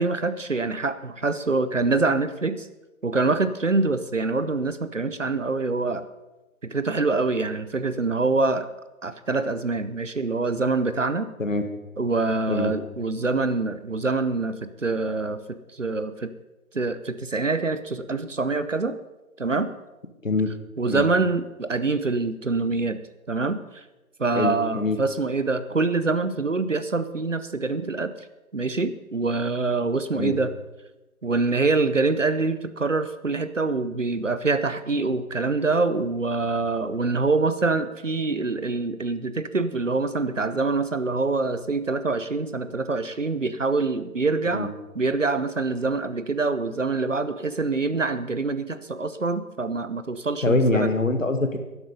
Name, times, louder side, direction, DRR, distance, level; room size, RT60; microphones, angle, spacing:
voice 1, 0.0-2.7 3.0-6.0 6.6-8.7 9.0-11.3 12.0-16.3 16.7-19.0 19.4-19.7 20.8-23.0 23.3-23.8 24.2-28.1 28.5-30.5 31.2-50.9, right 3 dB, 55° right, 12 dB, 0.9 m, -25 dB
voice 2, 24.3-25.0 30.1-30.4 44.5-44.7 50.4-51.6, left 2 dB, 60° left, 7 dB, 1.7 m, -24 dB
13.0 x 10.5 x 5.4 m, 1.0 s
figure-of-eight pair, 170°, 44 cm